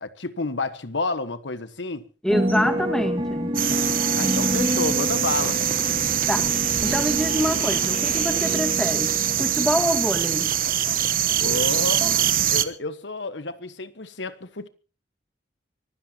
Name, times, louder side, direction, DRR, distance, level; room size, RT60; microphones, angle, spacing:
voice 1, 0.0-2.0 4.1-5.6 11.4-12.1 12.5-14.7, left 3 dB, 90° left, 1.3 m, -30 dB
voice 2, 2.2-3.6 6.3-6.5 6.8-10.5, equal, 5° left, 1.8 m, -26 dB
sound 1, 2.3-12.3, equal, 30° right, 2.0 m, -29 dB
sound 2, 3.5-12.6, right 10 dB, 50° right, 1.0 m, -23 dB
sound 3, 4.1-9.7, left 3 dB, 40° left, 2.3 m, -41 dB
24.5 x 16.0 x 2.9 m
head